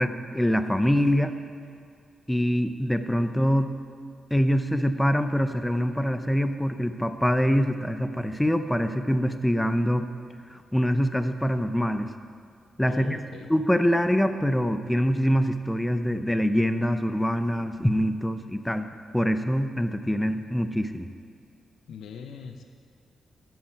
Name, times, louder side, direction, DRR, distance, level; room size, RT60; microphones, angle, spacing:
voice 1, 0.0-1.3 2.3-3.7 4.3-10.1 10.5-12.1 12.8-13.2 13.5-21.1, equal, 5° left, 9 dB, 0.6 m, -24 dB
voice 2, 12.9-13.5 21.9-22.6, left 6 dB, 90° left, 4 dB, 0.7 m, -41 dB
12.5 x 7.9 x 4.7 m, 2.2 s
wide cardioid pair, 130°, 0 cm